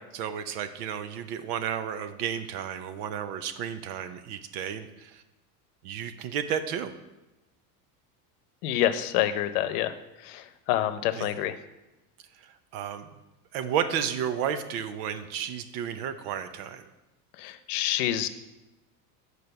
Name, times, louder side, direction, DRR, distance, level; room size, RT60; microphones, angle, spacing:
voice 1, 0.1-5.2 5.8-6.9 11.2-11.3 12.4-13.2 13.5-16.8, right 8 dB, 75° right, 10 dB, 0.9 m, -32 dB
voice 2, 8.6-9.9 10.2-11.5 17.4-18.3, left 12 dB, 75° left, 11 dB, 0.8 m, -27 dB
6.9 x 4.7 x 6.7 m, 1.0 s
supercardioid pair, 125°, 45 cm